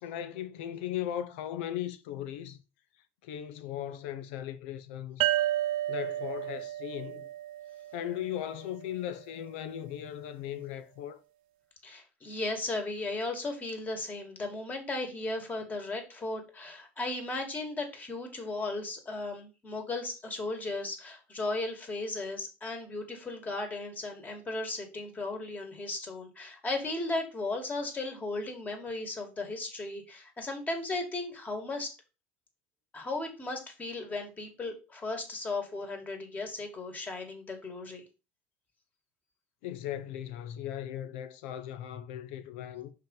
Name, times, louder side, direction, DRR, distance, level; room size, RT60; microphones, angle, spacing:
voice 1, 0.0-2.6 3.2-5.2 5.9-7.3 7.9-11.2 39.6-42.9, left 11 dB, 75° left, 0.8 m, -37 dB
sound 1, 5.2-8.7, right 14 dB, 70° right, 0.4 m, -32 dB
voice 2, 11.8-31.9 32.9-38.0, left 2 dB, 25° left, 2.3 m, -36 dB
5.3 x 3.9 x 5.5 m
hypercardioid pair, 80°, 6 cm